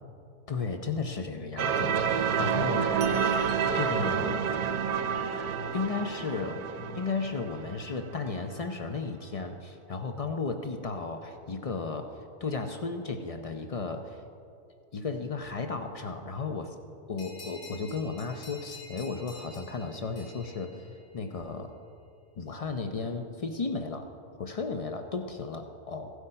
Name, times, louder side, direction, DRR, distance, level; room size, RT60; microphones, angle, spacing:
voice 1, 0.5-3.0 3.7-4.5 5.7-6.6 6.9-12.1 12.4-14.2 14.9-16.7 17.1-20.9 21.1-21.7 22.4-24.1 24.4-26.1, left 4 dB, 65° left, 6 dB, 0.3 m, -34 dB
sound 1, 1.6-8.3, right 7 dB, 85° right, 1.2 m, -29 dB
sound 2, 17.2-21.4, left 3 dB, 85° left, 2.3 m, -49 dB
15.5 x 8.1 x 5.6 m, 2.5 s
omnidirectional pair, 1.5 m